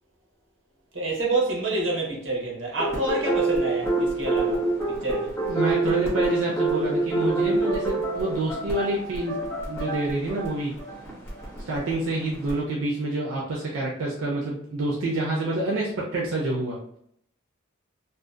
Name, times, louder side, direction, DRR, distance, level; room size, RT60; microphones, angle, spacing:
voice 1, 0.9-4.6 4.9-5.3, right 2 dB, 65° right, -2 dB, 0.9 m, -27 dB
sound 1, 2.8-12.6, right 2 dB, 10° left, 0.7 m, -27 dB
voice 2, 5.5-9.3 9.7-10.7 11.7-16.8, right 2 dB, 90° right, -4 dB, 0.5 m, -27 dB
2.6 x 2.1 x 2.4 m, 0.68 s
head